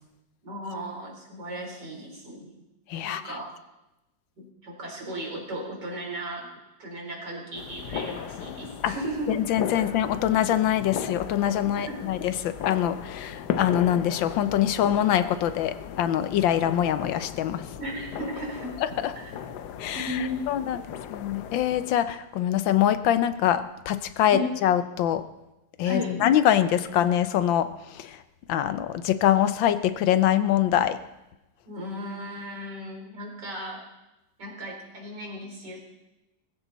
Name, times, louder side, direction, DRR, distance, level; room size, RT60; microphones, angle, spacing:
voice 1, 0.4-2.6 3.0-3.5 4.4-6.5 6.8-9.4 9.8-9.9 11.6-12.2 17.8-19.3 19.9-20.9 24.3-24.5 25.8-26.2 31.7-33.8 34.4-35.8, equal, 65° right, -1 dB, 4.7 m, -36 dB
voice 2, 2.9-3.2 8.8-8.9 9.5-17.7 19.8-20.2 20.5-20.8 21.1-25.2 25.8-28.2 28.5-31.0, left 11 dB, 90° left, 11 dB, 1.6 m, -24 dB
sound 1, 7.5-22.0, left 8 dB, 65° left, 1.2 m, -37 dB
19.5 x 15.5 x 4.1 m, 0.96 s
omnidirectional pair, 2.0 m